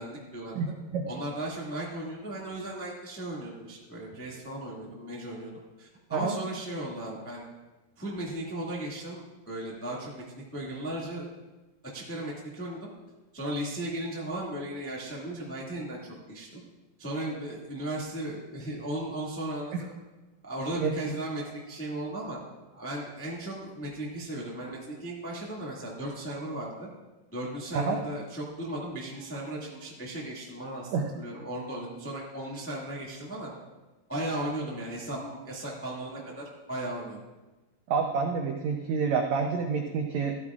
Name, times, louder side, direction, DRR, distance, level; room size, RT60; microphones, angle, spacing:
voice 1, 0.0-0.6 1.1-5.5 5.8-7.4 8.0-10.2 10.5-11.3 11.9-12.9 13.3-16.6 17.0-19.7 20.4-22.4 22.7-26.9 27.3-33.5 34.1-37.2, right 1 dB, 15° left, -4 dB, 0.5 m, -36 dB
voice 2, 0.6-1.0 6.1-6.3 19.7-19.8 20.8-21.1 27.7-28.0 30.9-31.0 37.9-40.3, right 5 dB, 85° right, 2 dB, 1.6 m, -28 dB
15.0 x 13.0 x 2.4 m, 1.1 s
omnidirectional pair, 4.2 m